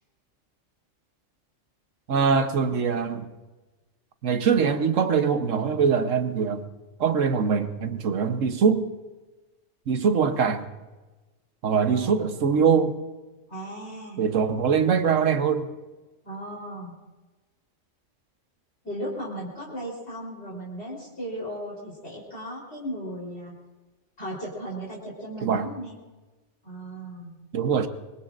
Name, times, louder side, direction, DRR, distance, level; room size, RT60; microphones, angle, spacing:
voice 1, 2.1-3.3 4.2-6.6 7.0-8.9 9.9-10.7 11.6-13.0 14.2-15.7 25.4-25.7 27.5-27.9, right 6 dB, 80° right, 8 dB, 1.4 m, -23 dB
voice 2, 11.9-12.2 13.5-14.2 16.2-17.0 18.8-23.5 24.2-26.0 26.6-27.4, right 1 dB, 55° left, -4 dB, 4.1 m, -36 dB
24.5 x 22.5 x 2.5 m, 1.2 s
omnidirectional pair, 1.3 m